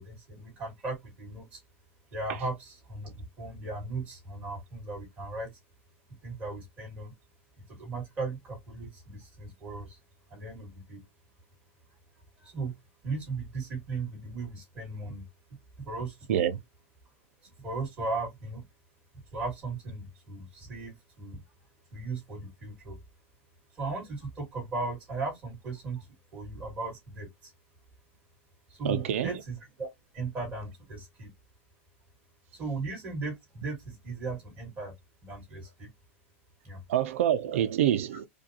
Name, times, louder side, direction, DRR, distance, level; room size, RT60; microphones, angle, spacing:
voice 1, 0.0-1.6 2.1-5.5 6.2-7.1 7.7-10.0 10.3-11.0 12.4-12.7 13.0-15.2 15.8-16.4 17.6-18.6 19.1-21.4 21.9-23.0 23.7-26.1 26.3-27.5 28.7-29.9 30.1-31.3 32.5-34.9 35.2-35.9 36.6-36.8, right 3 dB, 20° right, 2.3 m, -37 dB
voice 2, 28.8-29.3 36.9-38.3, right 10 dB, 80° right, 0.4 m, -26 dB
4.9 x 2.3 x 2.8 m
supercardioid pair, 180°, 7 cm